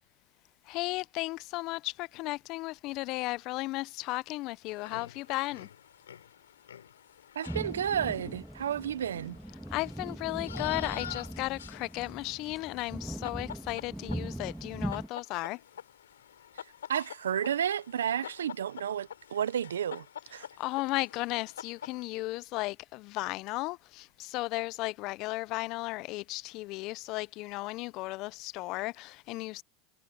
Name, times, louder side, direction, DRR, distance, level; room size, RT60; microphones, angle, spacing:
voice 1, 0.7-5.7 9.7-15.6 20.3-29.6, left 21 dB, 55° left, 0.6 m, -35 dB
sound 1, 4.7-22.0, left 9 dB, 90° left, 3.5 m, -48 dB
voice 2, 7.3-9.4 16.6-16.7 16.9-20.1 20.3-20.5, right 9 dB, 85° right, 0.8 m, -31 dB
sound 2, 7.5-15.1, right 1 dB, 5° right, 2.5 m, -40 dB
hypercardioid pair, 95°, 0 cm